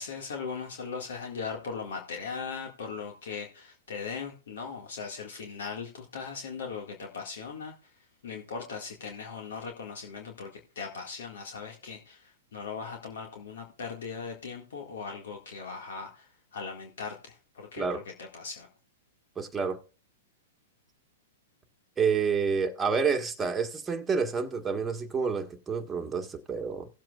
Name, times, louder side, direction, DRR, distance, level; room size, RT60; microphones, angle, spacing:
voice 1, 0.0-7.7 8.2-10.5 10.8-16.3 16.5-18.0 18.3-18.7, left 5 dB, 75° left, 1.9 m, -39 dB
voice 2, 19.4-19.8 22.0-26.9, right 5 dB, 15° right, 1.4 m, -29 dB
18.0 x 7.6 x 2.4 m
hypercardioid pair, 120°, 0 cm